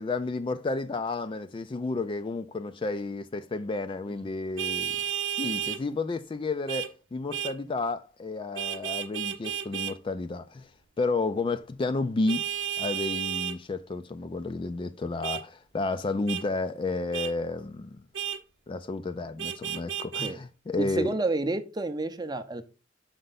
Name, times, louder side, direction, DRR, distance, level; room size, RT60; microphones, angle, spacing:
voice 1, 0.0-5.0 5.4-10.7 11.0-12.4 12.8-18.0 18.7-21.1, left 3 dB, 25° left, 0.3 m, -31 dB
Vehicle horn car horn honking, 4.6-5.8 6.7-6.9 7.3-7.6 8.6-10.0 12.3-13.6 15.2-15.4 16.3-16.4 17.1-17.3 18.1-18.4 19.4-20.3, right 10 dB, 75° right, 0.7 m, -32 dB
voice 2, 20.8-22.6, right 2 dB, 20° right, 0.6 m, -29 dB
6.5 x 4.5 x 3.9 m
head